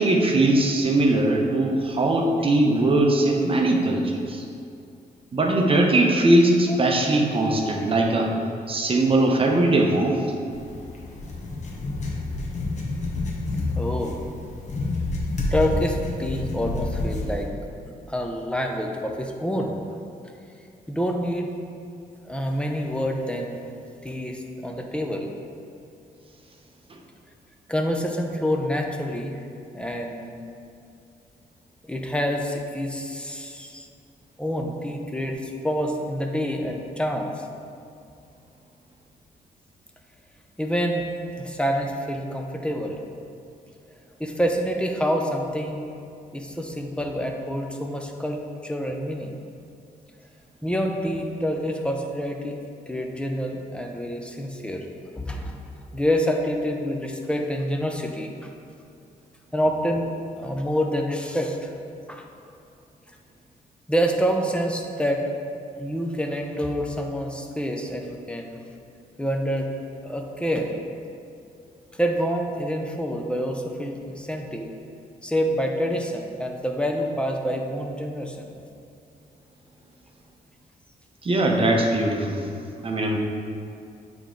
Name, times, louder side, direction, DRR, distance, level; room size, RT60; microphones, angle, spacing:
voice 1, 0.0-4.4 5.3-8.3 8.7-10.2 81.2-82.5 82.8-83.2, right 2 dB, 35° right, 1 dB, 0.8 m, -20 dB
sound 1, 10.5-17.5, left 2 dB, 45° left, 1.0 m, -29 dB
voice 2, 13.7-14.2 15.5-17.5 17.9-19.8 20.9-21.5 22.2-23.6 24.0-25.3 27.7-29.4 29.7-30.4 31.9-33.9 34.4-37.5 40.6-41.1 41.3-43.0 44.2-45.8 46.3-49.3 50.6-52.6 52.9-54.9 55.1-55.6 55.9-58.5 59.5-60.1 60.4-61.7 62.1-62.3 63.9-65.2 65.8-68.6 69.2-69.7 70.0-70.7 71.9-74.7 75.2-78.5, equal, 5° left, 2 dB, 0.6 m, -27 dB
8.3 x 3.5 x 3.8 m, 2.5 s
cardioid pair, 105°, 16 cm